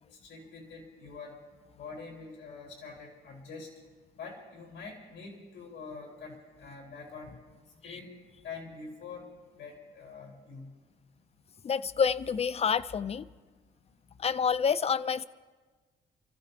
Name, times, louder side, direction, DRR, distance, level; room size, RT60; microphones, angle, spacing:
voice 1, 0.1-1.4 1.7-3.7 4.2-7.4 7.8-8.1 8.4-9.3 9.6-10.7, left 4 dB, 70° left, 0 dB, 4.6 m, -45 dB
voice 2, 11.6-13.3 14.2-15.3, left 6 dB, 30° left, 17 dB, 0.4 m, -28 dB
29.0 x 14.5 x 2.8 m, 1.4 s
cardioid pair, 90°, 20 cm